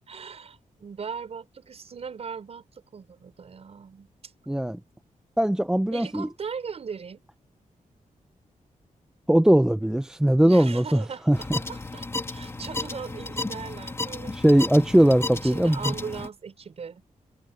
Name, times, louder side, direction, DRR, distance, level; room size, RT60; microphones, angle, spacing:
voice 1, 0.1-4.3 5.9-7.2 10.4-14.4 15.3-17.0, right 6 dB, 50° right, 5.6 m, -39 dB
voice 2, 4.5-4.8 5.4-6.3 9.3-11.4 14.3-15.9, right 1 dB, 5° right, 0.5 m, -20 dB
sound 1, 11.3-16.3, left 2 dB, 20° left, 2.3 m, -33 dB
wide cardioid pair, 175°, 14 cm